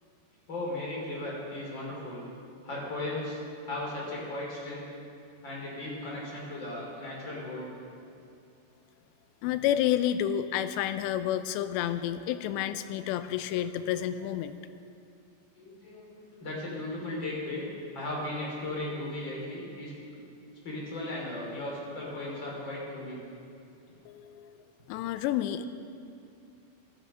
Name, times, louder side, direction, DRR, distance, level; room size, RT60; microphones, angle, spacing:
voice 1, 0.5-2.2 2.6-3.4 3.6-4.9 5.4-7.7 15.5-17.7 17.9-19.9 20.6-23.2, left 1 dB, 30° left, -4 dB, 3.3 m, -36 dB
voice 2, 9.4-14.6 24.1-24.6 24.9-25.7, left 11 dB, 85° left, 11 dB, 2.7 m, -30 dB
15.5 x 13.0 x 5.5 m, 2.5 s
omnidirectional pair, 5.1 m